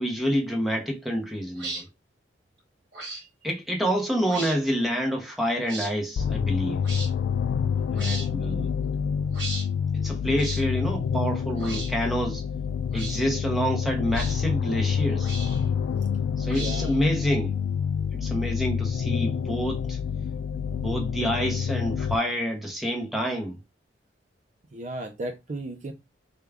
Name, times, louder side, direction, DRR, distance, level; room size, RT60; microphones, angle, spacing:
voice 1, 0.0-1.9 3.4-6.8 7.9-8.7 9.9-12.4 12.9-15.3 16.4-17.6 18.1-20.0 20.7-23.6, equal, ahead, 0.7 m, -28 dB
sound 1, 1.5-1.8 2.9-3.2 4.2-4.6 5.7-5.9 6.8-7.1 7.9-8.3 9.3-9.7 10.4-10.6 11.6-11.9 12.9-13.2 14.1-14.4 15.2-15.7 16.5-17.0, right 3 dB, 60° right, 1.8 m, -36 dB
sound 2, 6.2-22.2, left 7 dB, 80° left, 0.3 m, -27 dB
voice 2, 16.6-16.9 24.7-25.9, right 1 dB, 40° right, 0.4 m, -35 dB
3.5 x 2.2 x 3.4 m
head